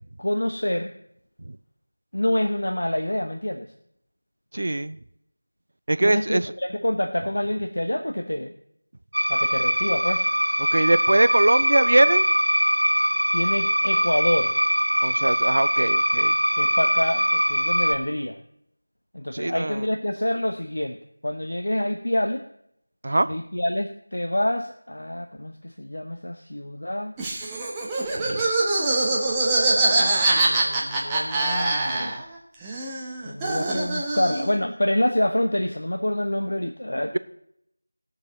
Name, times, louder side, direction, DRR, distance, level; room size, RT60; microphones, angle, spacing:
voice 1, 0.2-0.9 2.1-3.7 6.0-8.5 9.3-10.2 13.3-14.5 16.6-18.4 19.1-21.0 21.2-22.4 23.2-27.1 29.6-32.2 33.2-37.2, left 1 dB, 70° left, 6 dB, 0.8 m, -27 dB
voice 2, 4.5-5.0 5.9-6.4 10.6-12.3 15.0-16.3 19.3-19.8 23.0-23.3 28.1-28.5, right 2 dB, 50° right, 15 dB, 0.5 m, -22 dB
sound 1, 9.1-17.9, equal, 80° right, 1.7 m, -22 dB
Laughter, 27.2-32.4 32.6-34.6, right 2 dB, 10° right, 0.9 m, -24 dB
20.0 x 6.7 x 4.1 m, 0.74 s
figure-of-eight pair, 170°, 0 cm